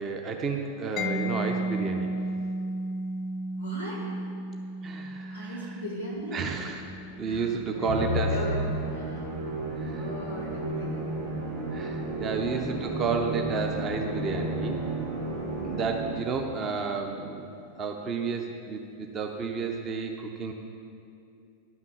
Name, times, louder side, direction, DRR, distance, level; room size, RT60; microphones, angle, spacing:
voice 1, 0.0-2.1 4.8-5.8 6.3-6.9 7.2-8.4 9.7-10.1 11.7-14.8 15.6-17.5 17.8-20.5, right 5 dB, 30° right, 3 dB, 0.6 m, -31 dB
Mallet percussion, 1.0-8.5, right 1 dB, 30° left, 0.5 m, -34 dB
voice 2, 3.6-4.0 5.3-6.4 7.2-11.1 12.1-12.7 15.3-15.7, left 1 dB, 90° right, -7 dB, 2.4 m, -39 dB
Musical instrument, 7.9-16.4, right 1 dB, 75° right, 2.4 m, -32 dB
11.0 x 6.0 x 5.5 m, 2.6 s
figure-of-eight pair, 90°, 0 cm